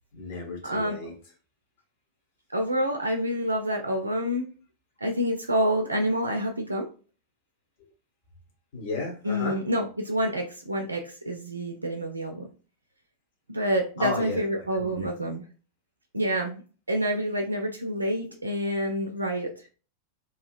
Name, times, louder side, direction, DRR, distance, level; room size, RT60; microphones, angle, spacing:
voice 1, 0.1-1.1 7.8-7.9 8.7-9.6 14.0-15.1, left 3 dB, 50° left, 1 dB, 1.1 m, -34 dB
voice 2, 0.6-1.0 2.5-4.5 5.0-6.9 9.2-12.5 13.5-15.4 16.1-16.6 16.9-19.5, equal, 80° right, 3 dB, 0.4 m, -27 dB
2.8 x 2.8 x 2.4 m, 0.37 s
figure-of-eight pair, 90°, 0 cm